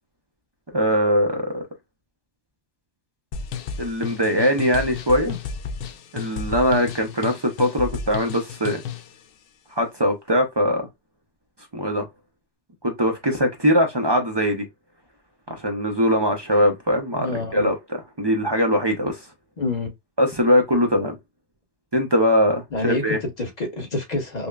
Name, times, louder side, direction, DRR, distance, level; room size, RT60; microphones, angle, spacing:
voice 1, 0.7-1.6 3.8-5.4 6.1-8.8 9.8-10.9 11.7-12.1 12.8-14.6 15.5-19.2 20.2-21.1 21.9-23.2, equal, 30° right, 0.5 m, -21 dB
sound 1, 3.3-9.1, left 6 dB, 65° left, 0.7 m, -33 dB
voice 2, 17.1-17.7 19.6-19.9 22.7-24.5, left 2 dB, 40° left, 1.2 m, -27 dB
5.3 x 2.1 x 2.3 m
omnidirectional pair, 1.2 m